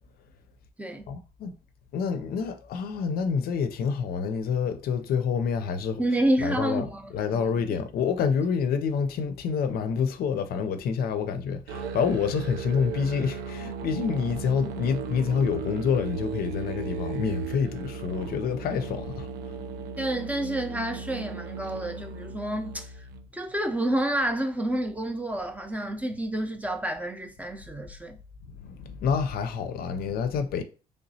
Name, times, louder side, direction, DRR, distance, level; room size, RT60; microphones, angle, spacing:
voice 1, 1.1-1.5 1.9-6.0 6.4-19.6 28.5-30.6, left 6 dB, 65° left, 0.5 m, -28 dB
voice 2, 6.0-7.5 20.0-22.9 23.3-28.2, right 1 dB, 10° right, 0.5 m, -29 dB
Musical instrument, 11.7-23.3, right 5 dB, 90° right, 0.5 m, -36 dB
3.3 x 2.9 x 2.7 m
cardioid pair, 110°, 17 cm